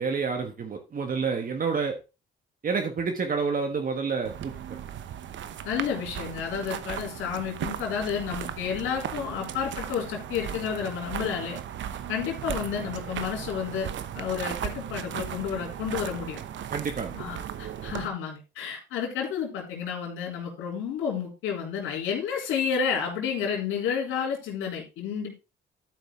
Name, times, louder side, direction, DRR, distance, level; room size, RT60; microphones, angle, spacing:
voice 1, 0.0-2.0 2.6-4.5 16.7-17.2, right 5 dB, 45° right, 4 dB, 1.5 m, -28 dB
sound 1, 4.2-18.1, right 9 dB, 70° right, 1.0 m, -36 dB
voice 2, 5.6-11.6 12.1-16.4 17.1-25.4, left 7 dB, 90° left, -2 dB, 3.4 m, -31 dB
12.0 x 5.2 x 3.7 m, 0.29 s
cardioid pair, 90°, 20 cm